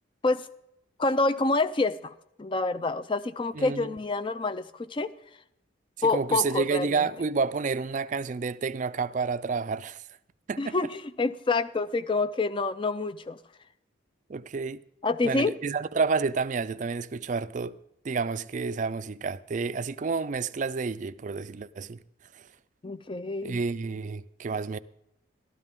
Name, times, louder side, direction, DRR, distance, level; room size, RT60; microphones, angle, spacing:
voice 1, 1.0-5.1 6.0-6.9 10.6-13.4 15.0-15.5 22.8-23.6, left 3 dB, 25° left, 0.4 m, -27 dB
voice 2, 3.5-4.0 6.0-10.1 10.5-10.8 14.3-14.8 15.2-17.8 18.0-22.0 22.3-22.5 23.4-24.8, right 4 dB, 40° right, 0.4 m, -30 dB
13.0 x 13.0 x 3.6 m
head